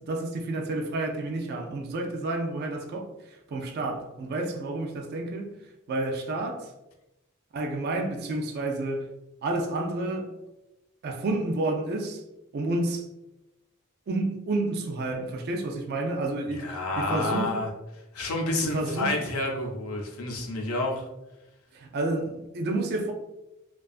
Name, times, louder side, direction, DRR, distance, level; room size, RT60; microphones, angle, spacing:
voice 1, 0.0-3.1 3.5-5.6 5.9-6.7 7.5-9.1 9.4-10.3 11.0-12.2 12.5-13.1 14.1-17.6 18.6-19.3 21.7-23.1, right 2 dB, 50° right, 0.3 m, -30 dB
voice 2, 16.5-17.7 18.1-21.1, left 2 dB, 75° left, 0.5 m, -29 dB
2.5 x 2.2 x 2.3 m
head